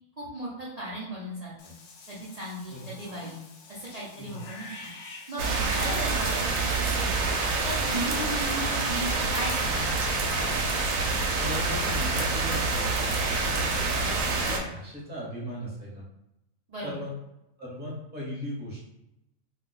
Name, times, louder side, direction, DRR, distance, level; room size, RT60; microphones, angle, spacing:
voice 1, 0.2-1.7 2.1-3.4 3.7-4.9 5.3-7.2 7.6-9.8 16.7-16.9, right 1 dB, 55° right, -7 dB, 0.4 m, -36 dB
Cat / Bathtub (filling or washing), 1.6-7.6, left 4 dB, 65° left, 0.8 m, -45 dB
sound 1, 5.4-14.6, right 3 dB, 70° right, 0.9 m, -27 dB
voice 2, 11.3-13.2 13.5-16.0 16.8-17.1 17.6-18.8, equal, 10° right, -6 dB, 0.8 m, -37 dB
2.4 x 2.2 x 3.8 m, 0.89 s
omnidirectional pair, 1.5 m